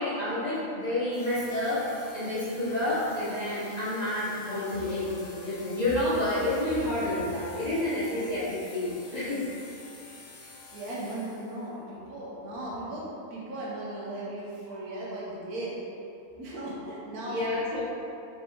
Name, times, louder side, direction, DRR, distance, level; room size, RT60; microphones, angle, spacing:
voice 1, 0.0-1.8 2.1-9.4 11.7-11.8 17.2-17.8, left 1 dB, 40° left, -11 dB, 0.7 m, -29 dB
sound 1, 1.1-11.7, left 3 dB, 65° left, 0.9 m, -49 dB
voice 2, 10.4-13.0 13.3-15.8 16.4-17.4, right 1 dB, 80° right, -6 dB, 1.4 m, -37 dB
4.2 x 3.1 x 3.2 m, 2.7 s
omnidirectional pair, 1.6 m